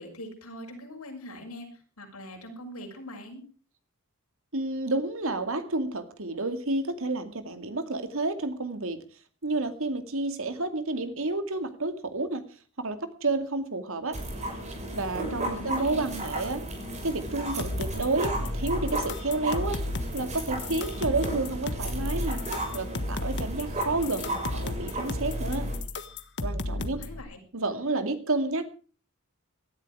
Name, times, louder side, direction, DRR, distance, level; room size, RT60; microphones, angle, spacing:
voice 1, 0.0-3.4 15.2-16.0 26.7-27.4, equal, 85° left, 2 dB, 6.5 m, -42 dB
voice 2, 4.5-9.0 9.4-12.4 12.8-14.2 14.7-16.6 17.0-19.8 20.1-22.4 22.7-25.7 26.4-27.0 27.5-28.7, right 2 dB, 70° right, 9 dB, 2.3 m, -30 dB
sound 1, 14.1-25.8, right 1 dB, 35° right, 6.1 m, -35 dB
sound 2, 17.5-27.2, left 2 dB, 55° left, 1.6 m, -34 dB
18.0 x 13.0 x 4.8 m, 0.39 s
head